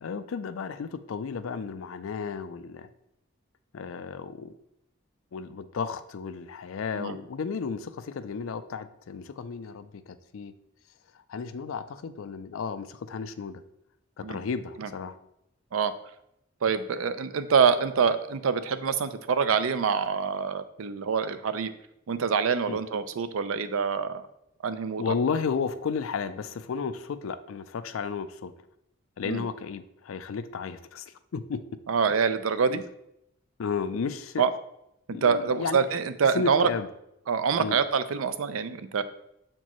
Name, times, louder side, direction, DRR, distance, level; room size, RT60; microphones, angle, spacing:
voice 1, 0.0-2.9 3.7-4.5 5.3-10.5 11.3-13.6 14.2-15.2 22.7-22.8 25.0-28.5 29.2-31.6 32.7-32.8 33.6-34.4 35.1-35.9 36.3-36.9 37.6-37.8, left 5 dB, 85° left, 12 dB, 0.4 m, -33 dB
voice 2, 16.6-21.7 22.1-24.2 24.6-25.0 29.2-29.4 31.9-32.8 34.4-34.5 35.1-36.7 37.3-39.0, right 6 dB, 90° right, 12 dB, 0.5 m, -25 dB
7.0 x 4.4 x 3.0 m, 0.80 s
head